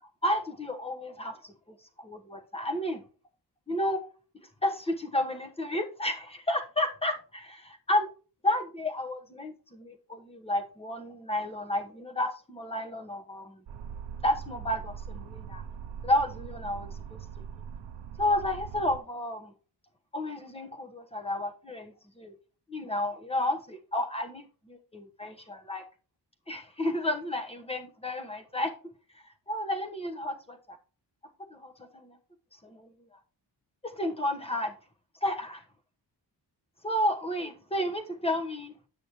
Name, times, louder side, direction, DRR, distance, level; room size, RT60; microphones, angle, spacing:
voice 1, 0.2-1.5 2.0-3.0 3.7-4.0 4.6-8.1 8.4-13.6 14.2-15.6 16.0-17.2 18.2-19.5 20.1-22.3 22.7-25.9 26.5-28.7 29.1-30.8 31.5-32.2 32.6-33.2 33.8-34.7 35.2-35.6 36.8-38.7, left 1 dB, 15° left, 1.0 m, -31 dB
sound 1, 13.7-19.0, right 7 dB, 80° right, 0.7 m, -41 dB
8.2 x 6.2 x 2.9 m
wide cardioid pair, 145°, 42 cm